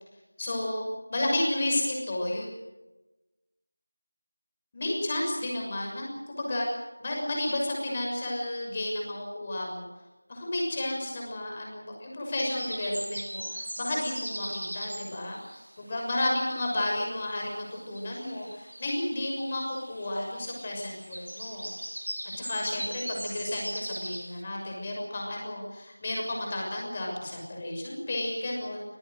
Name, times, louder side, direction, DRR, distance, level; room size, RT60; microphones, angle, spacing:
voice 1, 0.4-0.8 1.1-2.5 4.7-6.7 7.0-9.9 10.3-15.4 15.8-21.7 22.4-28.8, left 1 dB, 20° left, -1 dB, 6.4 m, -32 dB
sound 1, 12.4-16.7 17.0-24.4, right 1 dB, 65° right, 4.4 m, -40 dB
28.0 x 20.0 x 6.6 m, 1.1 s
figure-of-eight pair, 170°, 0 cm